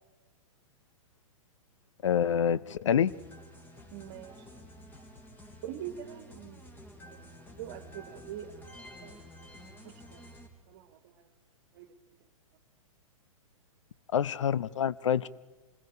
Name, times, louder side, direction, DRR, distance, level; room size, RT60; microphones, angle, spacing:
voice 1, 2.0-3.1 14.1-15.3, left 8 dB, 60° left, 0.7 m, -27 dB
sound 1, 3.1-10.5, equal, 10° left, 3.1 m, -50 dB
voice 2, 3.9-4.4 5.6-6.6 7.0-9.2 10.1-10.2 10.7-11.3 11.7-12.0, right 10 dB, 40° right, 1.8 m, -44 dB
27.5 x 21.0 x 5.1 m
figure-of-eight pair, 110°, 18 cm